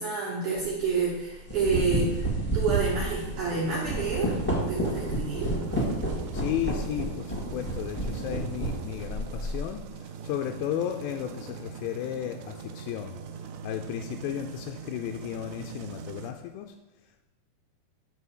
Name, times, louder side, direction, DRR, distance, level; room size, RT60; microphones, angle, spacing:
voice 1, 0.0-4.3 4.7-5.5, right 4 dB, 70° right, -4 dB, 2.0 m, -29 dB
sound 1, 0.6-0.8 1.3-9.7, right 1 dB, 10° left, 1.4 m, -30 dB
sound 2, 3.1-16.3, right 6 dB, 90° right, 2.1 m, -42 dB
voice 2, 6.3-13.2 13.6-16.8, left 11 dB, 85° left, 4 dB, 2.7 m, -34 dB
6.7 x 5.5 x 6.5 m, 1.0 s
omnidirectional pair, 5.0 m